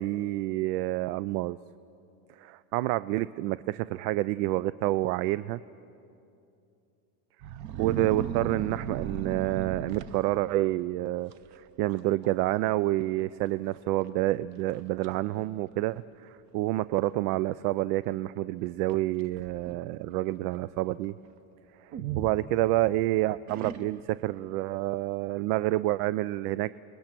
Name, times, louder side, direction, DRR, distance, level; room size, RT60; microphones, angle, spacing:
voice 1, 0.0-1.6 2.4-5.6 7.8-11.3 11.8-21.1 21.8-26.7, right 16 dB, 85° right, 17 dB, 0.5 m, -28 dB
sound 1, 7.4-10.7 11.3-11.6 11.9-12.3 12.6-12.7 13.5-13.6 14.1-14.2 14.7-15.1 15.9-16.0 18.9-19.9 21.9-23.0 23.5-24.2, right 8 dB, 40° right, 0.7 m, -36 dB
28.5 x 20.5 x 6.0 m, 2.7 s
cardioid pair, 160°, 45 cm